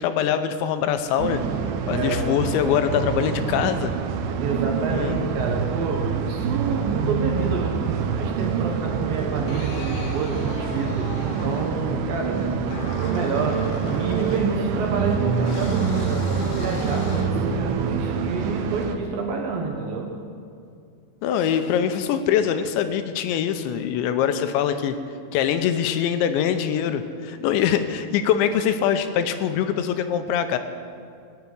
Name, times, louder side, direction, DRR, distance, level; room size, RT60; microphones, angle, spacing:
voice 1, 0.0-1.4 1.9-3.9 4.9-5.3 21.2-25.0 25.3-30.6, left 9 dB, 80° left, 9 dB, 3.0 m, -23 dB
sound 1, 1.2-19.0, right 6 dB, 85° right, 3.3 m, -26 dB
voice 2, 1.8-2.4 4.4-12.5 12.8-20.2, right 4 dB, 65° right, 1 dB, 2.5 m, -29 dB
sound 2, 6.6-7.6 9.3-11.9 12.7-14.9 15.4-17.7, left 4 dB, 60° left, 2.5 m, -38 dB
19.0 x 7.1 x 9.4 m, 2.3 s
omnidirectional pair, 5.3 m